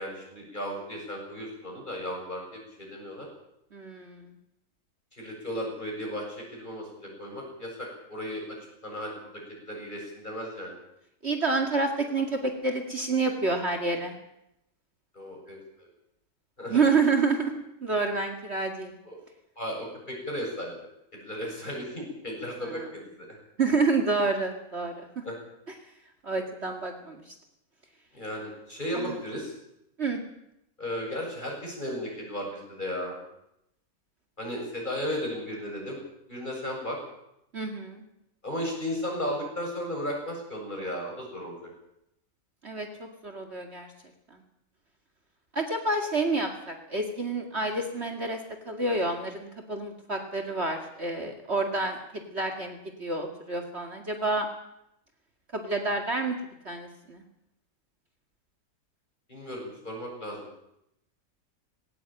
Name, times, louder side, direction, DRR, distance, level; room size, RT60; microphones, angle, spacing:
voice 1, 0.0-3.3 5.1-8.6 8.8-9.3 9.6-10.8 15.1-15.6 16.6-16.8 19.1-19.2 19.6-20.9 21.1-23.4 25.2-25.4 28.1-29.5 30.8-33.2 34.4-36.0 36.3-37.0 38.4-41.5 59.3-60.4, equal, 30° left, 0 dB, 8.0 m, -35 dB
voice 2, 3.7-4.3 11.2-14.2 16.7-17.5 17.8-19.0 22.6-22.9 23.6-25.2 26.2-27.3 28.9-29.2 30.0-30.2 37.5-38.0 42.6-43.9 44.3-44.4 45.5-48.4 48.7-54.5 55.5-56.4 56.6-57.2, right 3 dB, 45° right, 3 dB, 2.4 m, -28 dB
19.5 x 18.0 x 9.1 m, 0.81 s
omnidirectional pair, 1.6 m